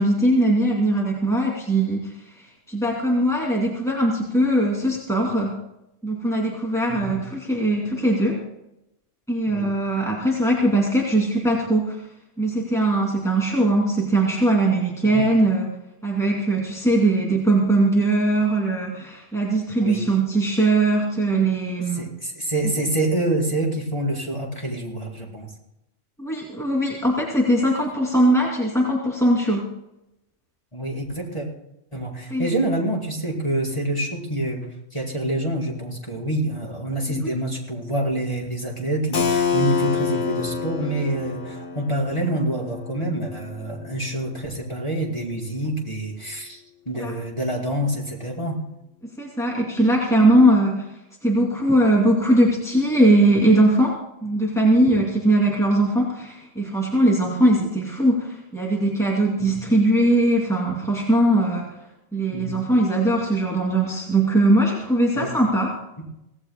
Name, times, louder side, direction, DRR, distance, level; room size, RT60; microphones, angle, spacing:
voice 1, 0.0-5.6 6.0-8.4 9.3-12.0 12.4-15.7 16.0-22.1 26.2-29.7 32.3-32.5 47.0-47.1 49.2-50.9 51.2-61.7 62.1-65.7, right 1 dB, ahead, -3 dB, 2.7 m, -20 dB
voice 2, 21.9-25.5 30.7-31.5 31.9-48.6 59.4-59.6 62.3-62.6 65.1-65.3 66.0-66.1, right 1 dB, 25° left, -2 dB, 4.5 m, -27 dB
Keyboard (musical), 39.1-44.7, left 6 dB, 90° left, 1.5 m, -28 dB
25.5 x 17.5 x 2.2 m, 0.86 s
omnidirectional pair, 1.3 m